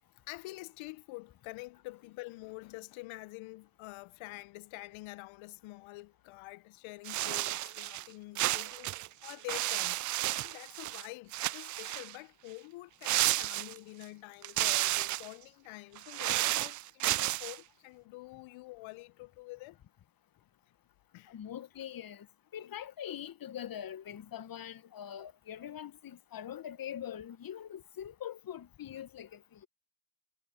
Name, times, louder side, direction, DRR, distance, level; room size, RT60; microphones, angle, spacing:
voice 1, 0.3-9.0 9.2-19.8 21.1-21.4 22.6-22.7, left 22 dB, 70° left, 1.4 m, -47 dB
sound 1, 7.1-8.1 8.4-11.1 11.3-12.2 13.0-14.0 14.4-15.3 16.0-17.6, right 16 dB, 40° right, 0.4 m, -32 dB
voice 2, 21.3-22.3 22.5-29.7, left 10 dB, 45° left, 1.6 m, -43 dB
hypercardioid pair, 50°, 50 cm